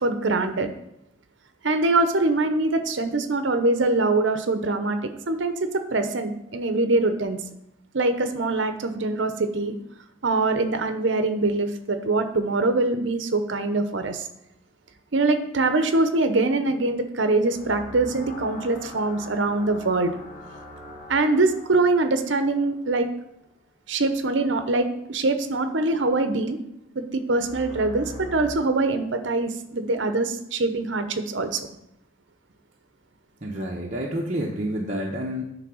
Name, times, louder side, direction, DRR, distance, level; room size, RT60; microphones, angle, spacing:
voice 1, 0.0-0.7 1.6-7.4 7.9-9.7 10.2-14.3 15.1-20.2 21.1-23.1 23.9-26.6 26.9-31.6, right 2 dB, 65° right, 9 dB, 0.7 m, -23 dB
sound 1, 17.5-23.3 27.3-28.5, left 1 dB, 10° right, 2.7 m, -42 dB
voice 2, 33.4-35.4, equal, 35° right, -3 dB, 0.8 m, -29 dB
9.7 x 3.4 x 6.2 m, 0.81 s
head